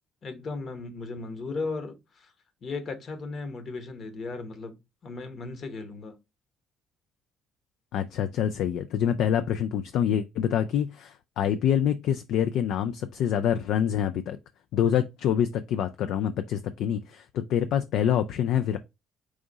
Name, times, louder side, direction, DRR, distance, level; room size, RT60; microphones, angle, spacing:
voice 1, 0.2-2.3 2.6-4.8 5.0-6.1, left 3 dB, 45° left, 1.1 m, -36 dB
voice 2, 7.9-14.4 14.7-18.8, left 9 dB, 65° left, 0.3 m, -26 dB
4.8 x 2.6 x 3.9 m
figure-of-eight pair, 50°, 0 cm